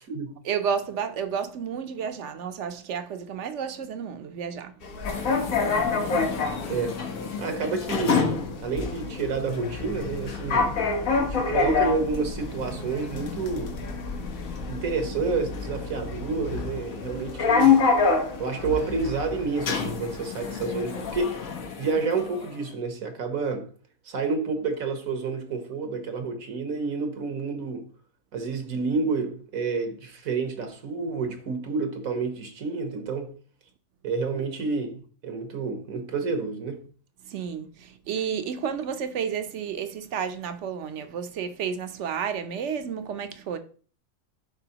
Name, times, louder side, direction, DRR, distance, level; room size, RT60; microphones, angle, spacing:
voice 1, 0.4-5.0 6.1-6.7 37.2-43.6, right 7 dB, 65° right, 1.0 m, -32 dB
sound 1, 4.8-21.6, left 4 dB, 50° left, 0.9 m, -42 dB
sound 2, 5.0-22.6, left 5 dB, 75° left, 1.5 m, -27 dB
voice 2, 6.7-7.0 7.4-8.3 8.6-10.7 11.3-13.7 14.7-17.8 18.4-23.7 24.0-27.9 28.3-33.3 34.0-36.8, right 4 dB, 80° right, 1.6 m, -29 dB
11.0 x 4.3 x 2.9 m
omnidirectional pair, 1.4 m